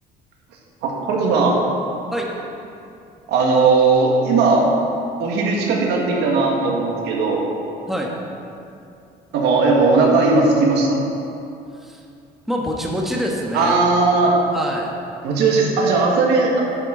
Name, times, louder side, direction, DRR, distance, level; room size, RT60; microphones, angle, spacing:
voice 1, 0.8-1.6 3.3-4.7 5.2-7.4 9.3-11.1 13.5-14.3 15.2-16.6, right 3 dB, 85° right, -1 dB, 1.8 m, -17 dB
voice 2, 12.5-13.9 14.5-14.9, equal, ahead, -1 dB, 1.4 m, -25 dB
10.5 x 9.2 x 3.9 m, 2.6 s
cardioid pair, 110°, 17 cm